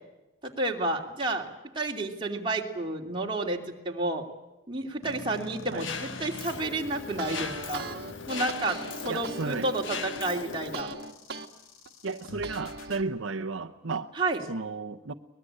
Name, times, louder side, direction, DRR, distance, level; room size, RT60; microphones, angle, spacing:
voice 1, 0.4-1.4 1.7-4.3 4.7-7.8 8.3-10.9 14.2-14.4, right 2 dB, 25° right, 0 dB, 2.9 m, -31 dB
sound 1, 5.0-13.0, left 2 dB, 90° left, 1.9 m, -44 dB
Mechanisms, 5.8-10.8, left 5 dB, 65° left, 1.6 m, -39 dB
sound 2, 6.9-11.5 11.9-13.0, right 3 dB, 50° right, 1.7 m, -40 dB
voice 2, 9.1-9.7 12.0-14.1 14.5-15.1, right 4 dB, 70° right, 7 dB, 0.9 m, -33 dB
23.5 x 20.5 x 9.0 m, 0.98 s
head